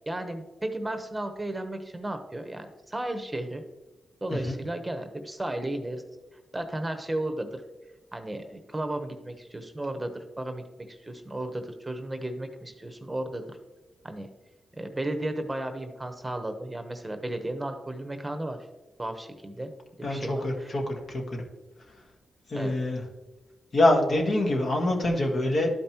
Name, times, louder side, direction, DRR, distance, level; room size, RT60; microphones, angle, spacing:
voice 1, 0.1-3.6 4.2-6.0 6.5-7.6 8.1-13.6 14.0-14.3 14.7-18.6 19.0-19.7 20.1-20.8 22.5-22.8, right 1 dB, 15° right, 7 dB, 0.9 m, -34 dB
voice 2, 20.0-20.8 21.1-21.4 22.5-23.0 23.7-25.7, left 1 dB, 55° left, 1 dB, 1.7 m, -25 dB
12.0 x 5.2 x 3.0 m, 1.1 s
cardioid pair, 65°, 0 cm